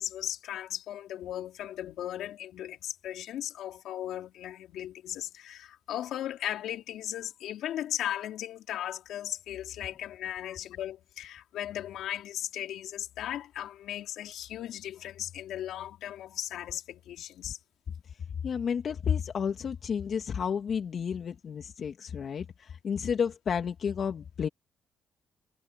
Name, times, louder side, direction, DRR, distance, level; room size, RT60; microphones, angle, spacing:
voice 1, 0.0-17.6, left 12 dB, 80° left, 3.8 m, -37 dB
voice 2, 18.4-24.5, left 7 dB, 55° left, 2.9 m, -31 dB
cardioid pair, 90°, 0 cm